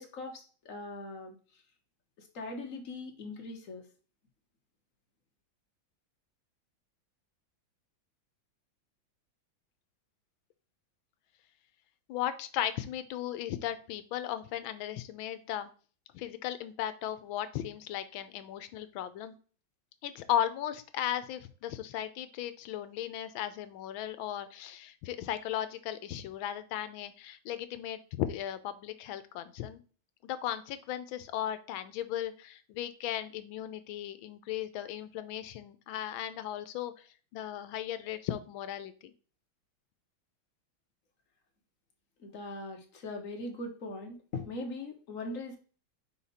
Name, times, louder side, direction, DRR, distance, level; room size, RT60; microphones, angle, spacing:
voice 1, 0.0-1.3 2.2-3.8 42.2-45.6, left 2 dB, 45° left, 3 dB, 1.5 m, -40 dB
voice 2, 12.1-15.7 16.1-19.4 20.0-29.8 30.2-39.1, left 11 dB, 85° left, 12 dB, 1.4 m, -36 dB
5.7 x 4.9 x 4.2 m, 0.39 s
omnidirectional pair, 2.2 m